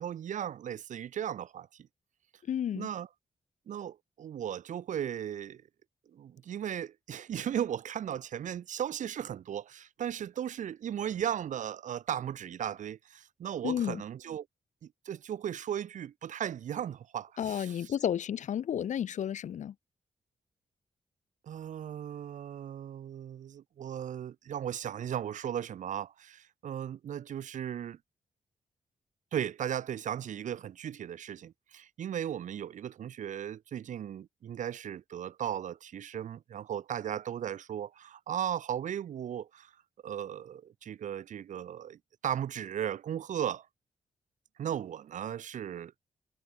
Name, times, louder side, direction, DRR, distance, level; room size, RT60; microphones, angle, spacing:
voice 1, 0.0-1.7 2.7-3.1 3.7-5.6 6.1-14.5 14.8-17.9 21.4-28.0 29.3-39.7 40.0-43.7 44.6-45.9, right 9 dB, 90° right, 4.1 m, -36 dB
voice 2, 2.5-2.9 13.6-14.0 17.4-19.7, left 9 dB, 75° left, 1.7 m, -32 dB
wide cardioid pair, 145°, 13 cm